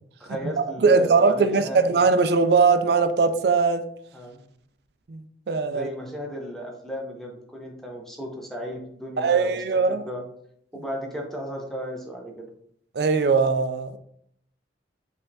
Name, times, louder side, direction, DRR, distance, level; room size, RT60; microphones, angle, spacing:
voice 1, 0.2-1.8 4.1-4.4 5.7-9.6 9.9-10.2 10.7-12.5, equal, ahead, 0.7 m, -35 dB
voice 2, 0.8-3.9 5.1-5.9 9.2-10.0 12.9-14.0, right 4 dB, 60° right, 0.4 m, -20 dB
5.3 x 3.4 x 2.7 m
head